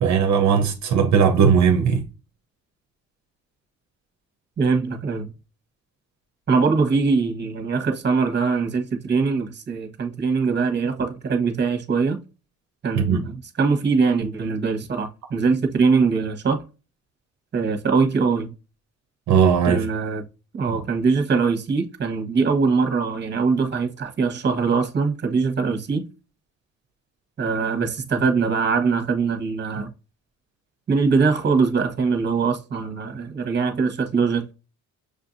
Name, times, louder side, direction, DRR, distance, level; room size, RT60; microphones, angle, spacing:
voice 1, 0.0-2.1 13.0-13.3 19.3-19.9 20.7-20.8, right 7 dB, 65° right, 0.7 m, -18 dB
voice 2, 4.6-5.3 6.5-12.2 12.8-16.6 17.5-18.5 19.7-20.2 20.6-26.0 27.4-29.9 30.9-34.5, right 4 dB, 35° right, 1.1 m, -22 dB
6.5 x 2.6 x 2.5 m
cardioid pair, 90°, 30 cm